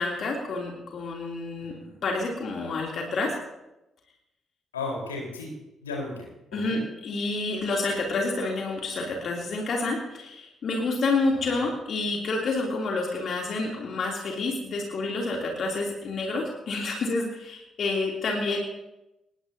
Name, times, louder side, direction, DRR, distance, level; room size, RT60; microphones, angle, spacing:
voice 1, 0.0-1.7 2.0-3.4 6.5-18.6, left 3 dB, 50° left, -1 dB, 3.0 m, -29 dB
voice 2, 4.7-5.5 5.8-6.3 6.6-6.8 11.3-11.4, left 3 dB, 80° left, -1 dB, 4.2 m, -34 dB
25.0 x 20.0 x 2.8 m, 0.93 s
figure-of-eight pair, 40°, 0 cm